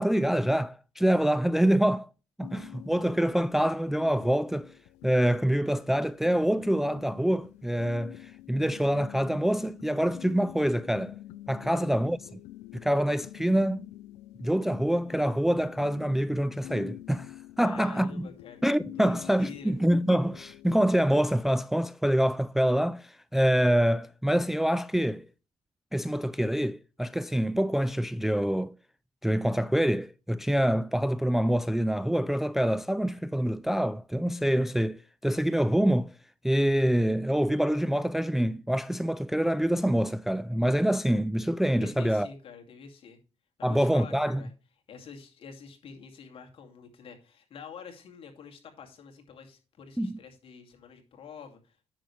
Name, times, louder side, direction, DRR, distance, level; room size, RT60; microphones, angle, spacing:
voice 1, 0.0-2.1 2.4-4.7 5.0-11.2 11.5-12.4 12.7-13.8 14.4-18.3 18.6-25.3 25.9-28.7 29.2-36.1 36.4-42.3 43.6-44.4 50.0-50.2, equal, 5° right, 0.3 m, -26 dB
sound 1, 2.4-21.3, left 15 dB, 90° left, 0.4 m, -47 dB
voice 2, 17.6-18.6 19.0-19.7 41.8-43.2 43.6-44.5 44.9-51.9, left 6 dB, 55° left, 2.4 m, -47 dB
9.8 x 6.9 x 3.3 m
cardioid pair, 85°, 11 cm